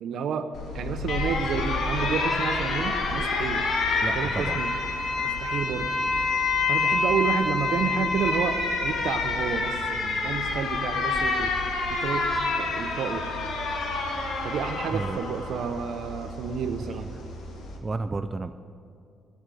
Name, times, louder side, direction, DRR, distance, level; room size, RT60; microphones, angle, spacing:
voice 1, 0.0-3.7 4.1-4.7 5.2-5.9 6.7-11.5 11.9-12.3 12.6-13.3 14.4-17.1, right 7 dB, 70° right, 9 dB, 0.6 m, -30 dB
Alarm, 0.5-17.8, left 3 dB, 70° left, 1.7 m, -28 dB
voice 2, 4.0-4.6 14.9-15.2 17.8-18.5, right 3 dB, 25° right, 9 dB, 0.4 m, -31 dB
11.0 x 6.5 x 9.2 m, 2.4 s
cardioid pair, 90°, 0 cm